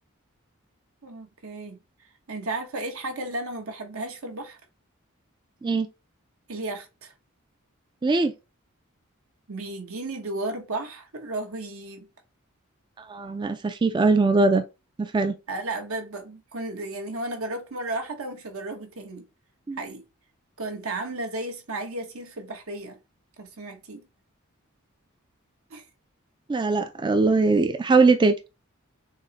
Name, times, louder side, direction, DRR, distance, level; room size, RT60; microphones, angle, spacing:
voice 1, 1.0-1.8 2.3-4.6 6.5-7.1 9.5-12.1 15.5-19.2 19.8-20.0 20.6-23.0 23.4-24.0 25.7-25.8, right 2 dB, 75° right, 1.2 m, -34 dB
voice 2, 8.0-8.3 13.1-14.6 15.0-15.3 19.7-19.8 26.5-28.3, right 3 dB, 20° right, 0.3 m, -21 dB
6.3 x 2.1 x 3.9 m
head